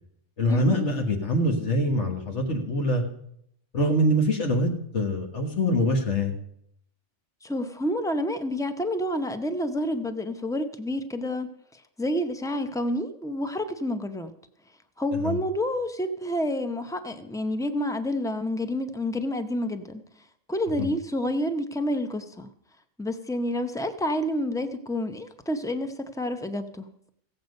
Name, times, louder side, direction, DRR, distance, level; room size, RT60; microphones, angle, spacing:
voice 1, 0.4-3.0 3.7-6.3 15.1-15.4 20.8-20.9, left 1 dB, 65° left, 3 dB, 1.8 m, -24 dB
voice 2, 7.4-14.3 15.0-20.0 20.5-22.5 23.0-26.9, left 1 dB, 5° left, 8 dB, 0.4 m, -29 dB
15.5 x 8.0 x 5.3 m, 0.70 s
omnidirectional pair, 1.3 m